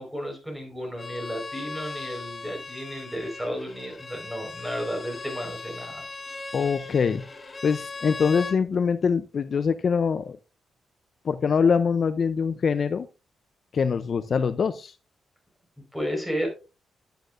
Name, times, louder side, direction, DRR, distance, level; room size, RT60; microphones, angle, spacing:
voice 1, 0.0-6.0 15.9-16.5, equal, 5° right, 1 dB, 4.6 m, -33 dB
Bowed string instrument, 1.0-8.6, left 3 dB, 25° left, 1.0 m, -39 dB
voice 2, 6.5-7.2 7.6-10.4 11.2-13.1 13.7-14.9, left 6 dB, 50° left, 12 dB, 0.5 m, -24 dB
11.0 x 9.1 x 2.5 m, 0.30 s
cardioid pair, 120°, 0 cm